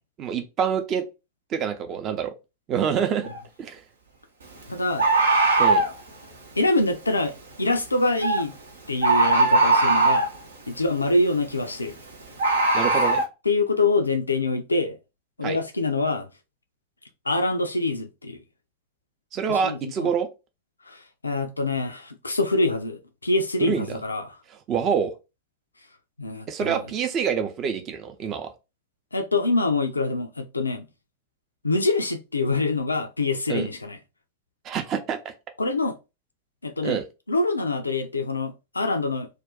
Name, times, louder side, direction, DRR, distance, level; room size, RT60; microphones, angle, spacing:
voice 1, 0.2-1.0 1.5-2.3 2.7-3.3 3.6-3.8 5.6-5.9 12.7-13.2 15.4-15.6 19.3-20.3 23.6-24.0 24.7-25.1 26.5-28.5 33.5-33.7 34.6-35.3 36.8-37.0, right 7 dB, 30° right, 0.6 m, -26 dB
Bird, 3.3-3.4 5.0-5.9 8.2-8.4 9.0-10.4 12.4-13.2, right 2 dB, 70° right, 0.7 m, -19 dB
voice 2, 4.7-5.1 6.6-8.5 8.9-10.3 10.7-11.9 13.4-15.0 15.4-16.3 17.2-18.4 19.5-20.1 20.8-24.4 26.2-26.8 29.1-30.9 31.6-34.0 35.6-36.0 36.6-37.0 37.3-39.3, left 2 dB, 80° left, 0.4 m, -25 dB
2.4 x 2.3 x 3.6 m
figure-of-eight pair, 90°, 0 cm